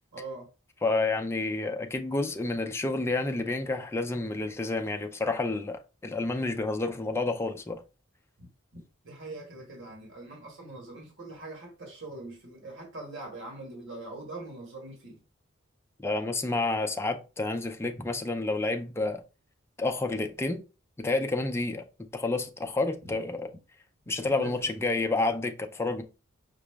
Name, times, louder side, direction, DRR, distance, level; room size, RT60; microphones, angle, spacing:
voice 1, 0.1-0.5 8.4-8.5 9.0-15.2 23.0-23.1 24.2-24.8, right 2 dB, 65° right, 1.3 m, -43 dB
voice 2, 0.8-7.8 16.0-19.2 19.8-20.6 21.0-21.8 22.1-23.5 24.1-26.0, left 2 dB, 10° left, 0.4 m, -29 dB
5.9 x 2.0 x 3.3 m
head